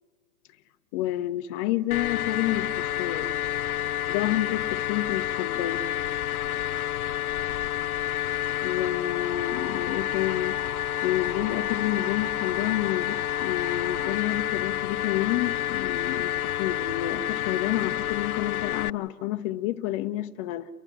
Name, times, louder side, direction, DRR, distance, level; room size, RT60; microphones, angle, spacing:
voice 1, 0.9-3.3 4.1-5.8 8.6-10.6 11.0-20.7, left 14 dB, 20° left, 0.6 m, -29 dB
sound 1, 1.9-18.9, left 12 dB, 80° left, 0.6 m, -29 dB
sound 2, 9.1-14.1, equal, 25° right, 3.2 m, -43 dB
29.0 x 11.5 x 10.0 m
hypercardioid pair, 130°, 44 cm